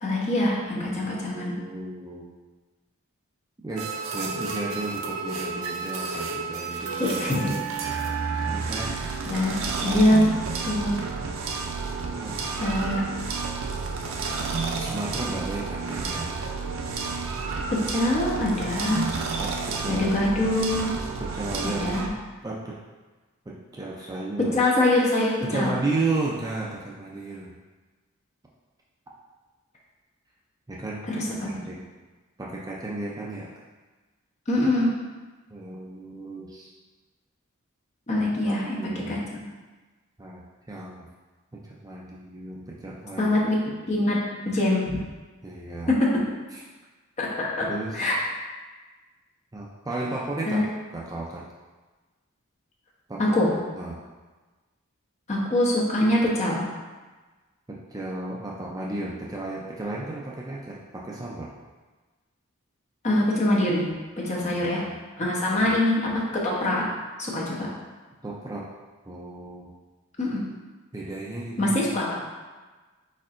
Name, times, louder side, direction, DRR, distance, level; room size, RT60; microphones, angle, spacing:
voice 1, 0.0-1.5 7.0-7.6 9.2-9.5 9.8-10.2 10.6-11.0 12.6-13.1 17.9-19.1 19.9-20.9 21.6-22.1 24.5-25.7 31.1-31.2 34.5-34.9 38.1-39.4 43.2-43.6 43.9-44.2 44.5-45.0 45.9-46.1 47.2-47.7 47.9-48.2 50.5-50.6 53.2-53.5 55.3-56.7 63.0-63.9 64.2-64.8 65.2-66.8 67.2-67.7 70.2-70.4 71.6-72.1, left 1 dB, 35° left, -5 dB, 0.9 m, -24 dB
voice 2, 0.7-2.3 3.6-7.2 8.4-9.0 9.3-10.0 12.1-13.2 14.7-16.4 19.4-20.1 21.2-22.1 22.4-22.8 23.5-24.6 25.4-27.5 30.7-31.0 31.4-31.8 32.4-33.5 35.5-36.7 38.4-39.2 40.2-41.1 41.5-43.4 45.4-45.9 46.5-46.6 47.6-48.1 49.5-50.7 50.9-51.4 53.1-53.4 53.7-54.0 57.7-61.5 64.5-64.7 65.5-65.7 68.2-68.7 69.1-69.7 70.9-71.8, right 2 dB, 15° right, -4 dB, 0.4 m, -34 dB
sound 1, 3.8-22.1, right 4 dB, 75° right, 0.5 m, -31 dB
4.5 x 4.3 x 2.5 m, 1.3 s
head